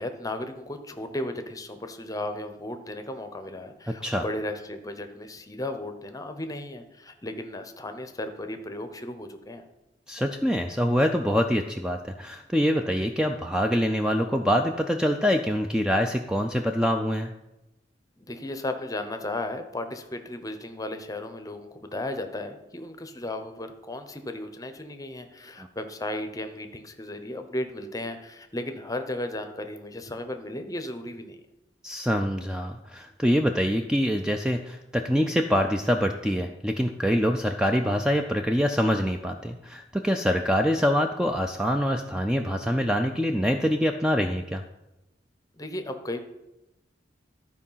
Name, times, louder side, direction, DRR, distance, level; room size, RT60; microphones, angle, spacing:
voice 1, 0.0-9.7 18.2-31.4 45.5-46.2, left 1 dB, 20° left, 7 dB, 0.7 m, -35 dB
voice 2, 10.1-17.3 25.6-25.7 31.8-44.6, equal, 5° right, 5 dB, 0.4 m, -25 dB
12.0 x 4.6 x 5.6 m, 0.95 s
head